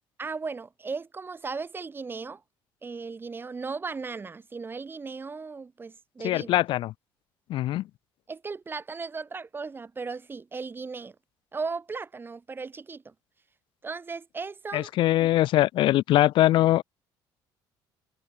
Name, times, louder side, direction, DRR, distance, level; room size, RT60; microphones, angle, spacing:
voice 1, 0.2-2.4 2.8-6.6 8.3-11.2 11.5-13.1 13.8-14.9 15.2-15.3, right 4 dB, 25° right, 0.7 m, -36 dB
voice 2, 6.2-6.9 7.5-7.9 14.7-16.8, left 15 dB, 65° left, 0.6 m, -22 dB
supercardioid pair, 85°, 9 cm